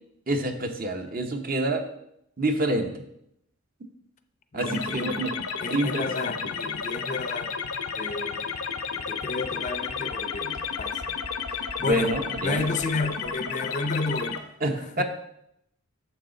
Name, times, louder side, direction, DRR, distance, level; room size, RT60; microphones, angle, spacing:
voice 1, 0.3-1.8 2.4-2.9 4.5-5.3 5.7-6.5 11.8-12.7 14.6-15.0, right 1 dB, 40° right, 0.8 m, -27 dB
voice 2, 4.5-5.3 5.6-7.5 7.9-8.6 8.9-11.2 11.8-14.4 14.8-15.0, left 3 dB, 35° left, 0.5 m, -32 dB
sound 1, 4.6-14.4, left 6 dB, 85° left, 0.8 m, -32 dB
9.1 x 7.1 x 3.8 m
head